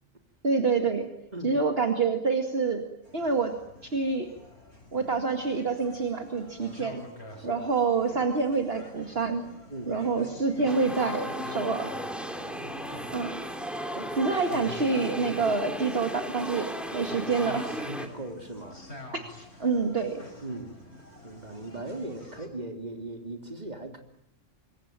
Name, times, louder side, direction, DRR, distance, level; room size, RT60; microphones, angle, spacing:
voice 1, 0.4-1.1 1.4-2.9 3.1-3.5 3.8-4.3 4.9-7.0 7.4-9.4 9.9-11.9 13.1-13.3 14.2-17.7 19.1-19.3 19.6-20.2, right 4 dB, 50° right, 4 dB, 2.3 m, -27 dB
sound 1, 3.0-22.5, left 1 dB, 55° left, 6.4 m, -47 dB
sound 2, 10.7-18.1, equal, ahead, 3.0 m, -35 dB
voice 2, 12.3-13.3 13.9-14.2 15.1-15.2 17.8-18.8 20.4-20.8 21.2-24.0, right 2 dB, 35° right, 4 dB, 3.5 m, -39 dB
26.5 x 23.5 x 8.9 m, 0.75 s
omnidirectional pair, 1.3 m